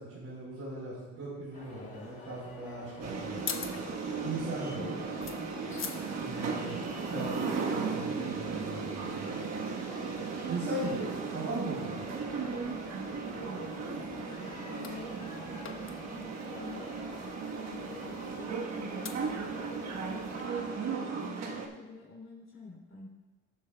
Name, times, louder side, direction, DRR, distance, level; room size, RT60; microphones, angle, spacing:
voice 1, 0.0-3.4 4.2-4.9 6.2-6.8 7.1-9.4 10.5-12.1, right 1 dB, 75° right, -8 dB, 3.4 m, -39 dB
sound 1, 1.5-20.9, left 2 dB, 25° left, 2.9 m, -49 dB
sound 2, 3.0-20.4, left 6 dB, 45° left, 1.0 m, -48 dB
sound 3, 3.0-21.7, right 5 dB, 60° right, 1.3 m, -36 dB
voice 2, 4.6-5.2 13.5-16.9 17.5-20.3 20.7-23.1, left 3 dB, 65° left, -6 dB, 3.1 m, -49 dB
18.0 x 7.6 x 2.3 m, 1.3 s
cardioid pair, 90°, 30 cm